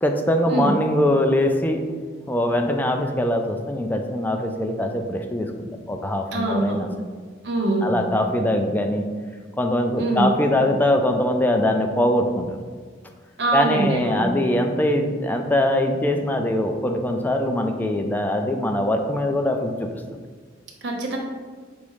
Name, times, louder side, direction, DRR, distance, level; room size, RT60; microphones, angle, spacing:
voice 1, 0.0-1.8 2.3-6.9 7.8-9.0 9.6-12.5 13.5-19.9, left 1 dB, 10° left, 4 dB, 0.3 m, -22 dB
voice 2, 6.3-6.8 7.4-7.9 10.0-10.3 13.4-14.3 20.8-21.2, right 1 dB, 65° right, 0 dB, 0.8 m, -23 dB
5.4 x 2.0 x 4.8 m, 1.5 s
head